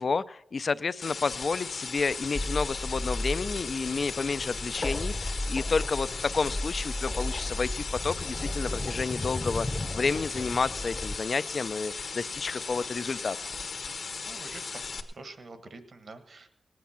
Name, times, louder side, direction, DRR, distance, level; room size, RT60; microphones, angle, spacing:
voice 1, 0.0-13.4, left 4 dB, 55° left, 16 dB, 0.4 m, -30 dB
sound 1, 1.0-15.0, left 4 dB, 75° left, 1.3 m, -37 dB
sound 2, 2.4-11.2, left 1 dB, 25° left, 0.7 m, -34 dB
voice 2, 10.1-10.5 14.2-14.8 15.1-16.5, right 3 dB, 60° right, 9 dB, 1.4 m, -47 dB
18.5 x 9.4 x 5.7 m, 0.79 s
wide cardioid pair, 90°, 0 cm